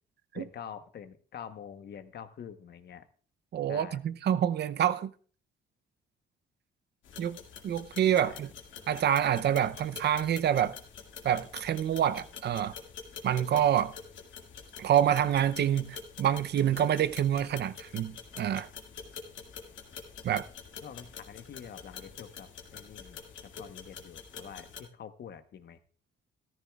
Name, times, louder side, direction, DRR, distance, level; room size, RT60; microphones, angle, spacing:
voice 1, 0.3-3.0 3.7-4.0 8.2-8.4 20.8-23.2 23.6-25.8, left 8 dB, 55° left, 1.0 m, -46 dB
voice 2, 3.5-5.1 7.2-7.4 7.6-8.5 8.9-10.8 11.2-12.7 13.2-13.9 14.8-18.7 20.2-20.4, right 10 dB, 60° right, 0.6 m, -27 dB
sound 1, 7.0-24.8, left 6 dB, 75° left, 2.0 m, -47 dB
14.0 x 13.5 x 2.4 m
cardioid pair, 90°, 20 cm